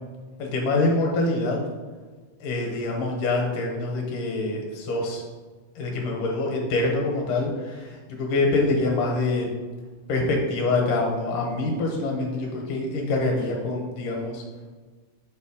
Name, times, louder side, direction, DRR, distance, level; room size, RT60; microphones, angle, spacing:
voice 1, 0.4-1.6 2.4-5.2 5.8-7.9 8.2-9.5 10.1-14.4, left 2 dB, 80° left, 0 dB, 2.5 m, -25 dB
6.6 x 3.2 x 4.8 m, 1.4 s
omnidirectional pair, 3.7 m